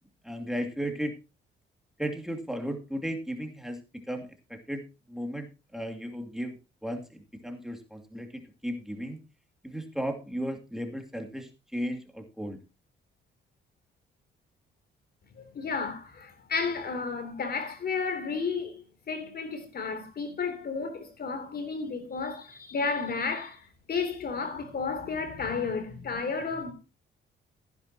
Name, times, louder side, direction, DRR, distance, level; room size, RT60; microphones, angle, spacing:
voice 1, 0.2-1.1 2.0-5.5 5.7-9.2 9.6-12.6, equal, ahead, 2.5 m, -35 dB
voice 2, 15.3-26.7, left 5 dB, 50° left, 3.3 m, -32 dB
15.0 x 10.5 x 2.9 m
cardioid pair, 90°, 20 cm